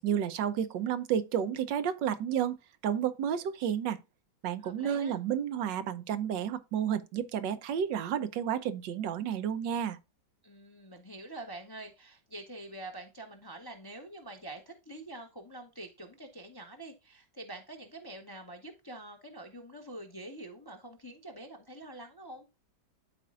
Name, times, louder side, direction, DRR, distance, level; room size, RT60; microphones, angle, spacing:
voice 1, 0.0-2.6 2.8-4.0 4.4-10.0, right 9 dB, 85° right, 1.4 m, -31 dB
voice 2, 4.6-5.2 10.4-22.4, right 1 dB, 20° left, 0.6 m, -46 dB
12.5 x 4.3 x 2.4 m
omnidirectional pair, 1.9 m